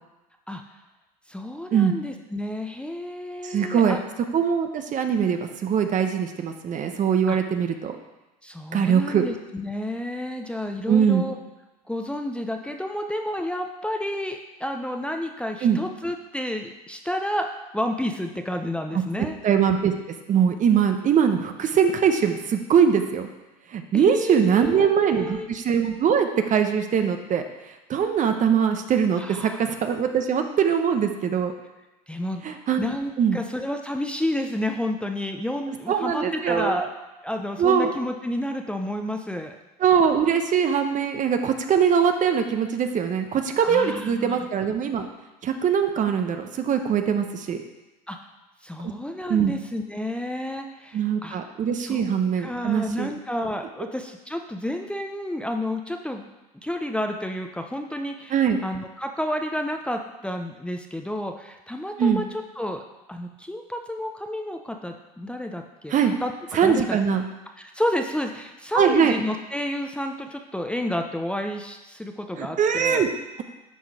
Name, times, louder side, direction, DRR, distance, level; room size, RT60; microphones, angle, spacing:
voice 1, 1.3-4.0 7.3-7.4 8.4-11.4 11.9-17.5 17.7-19.3 23.9-25.5 29.2-29.6 32.1-32.4 32.8-36.9 37.2-39.5 43.6-44.5 48.1-48.2 48.6-51.4 51.8-52.0 52.4-56.3 56.6-58.4 58.6-62.2 62.6-62.8 63.1-66.3 66.6-67.0 67.6-73.0, left 1 dB, 5° left, 4 dB, 0.7 m, -30 dB
voice 2, 3.4-4.0 4.3-8.0 8.7-9.2 10.9-11.3 15.6-15.8 18.9-19.9 20.3-23.3 23.7-27.4 27.9-31.5 32.4-32.9 33.2-33.4 35.9-36.8 37.6-37.9 39.8-45.1 45.4-47.6 49.3-49.5 50.9-53.1 58.3-58.6 62.0-62.2 65.9-66.1 66.5-67.2 68.7-69.1 72.4-73.1, right 7 dB, 40° right, 7 dB, 0.9 m, -22 dB
11.0 x 3.9 x 4.8 m, 1.1 s
hypercardioid pair, 80°, 20 cm